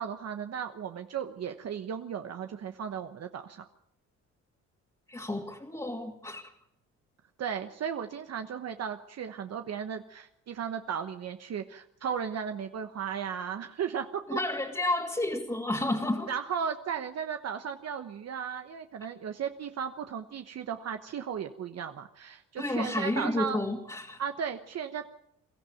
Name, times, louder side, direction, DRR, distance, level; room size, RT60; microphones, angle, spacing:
voice 1, 0.0-3.6 7.4-14.5 16.3-23.6 24.2-25.1, right 7 dB, 55° right, 7 dB, 1.1 m, -35 dB
voice 2, 5.1-6.4 14.3-16.3 22.6-24.2, left 2 dB, 15° left, -1 dB, 2.5 m, -31 dB
22.5 x 13.5 x 9.1 m, 0.82 s
cardioid pair, 90°, 30 cm